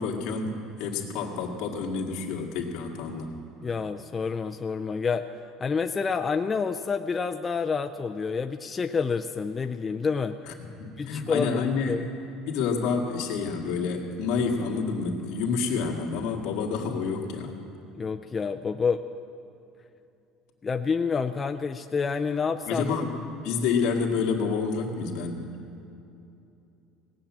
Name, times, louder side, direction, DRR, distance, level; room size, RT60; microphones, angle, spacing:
voice 1, 0.0-3.3 10.5-10.6 10.8-12.1 12.5-17.6 22.7-25.5, left 5 dB, 65° left, 0 dB, 1.9 m, -28 dB
voice 2, 3.6-5.3 5.6-10.4 11.0-11.5 11.9-12.1 18.0-19.0 20.6-22.8, left 5 dB, 20° left, 6 dB, 0.3 m, -28 dB
18.0 x 7.3 x 8.7 m, 2.7 s
cardioid pair, 160°, 0 cm